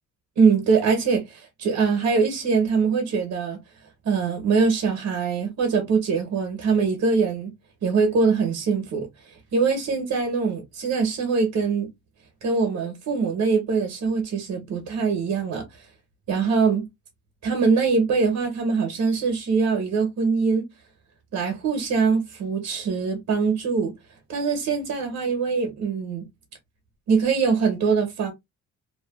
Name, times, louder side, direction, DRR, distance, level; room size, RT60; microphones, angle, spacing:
voice 1, 0.4-3.6 4.0-7.5 7.8-11.9 12.4-15.6 16.3-16.9 17.4-20.6 21.3-23.9 24.3-26.2 27.1-28.3, right 5 dB, 70° right, 1.0 m, -23 dB
2.7 x 2.4 x 2.3 m
cardioid pair, 90°, 30 cm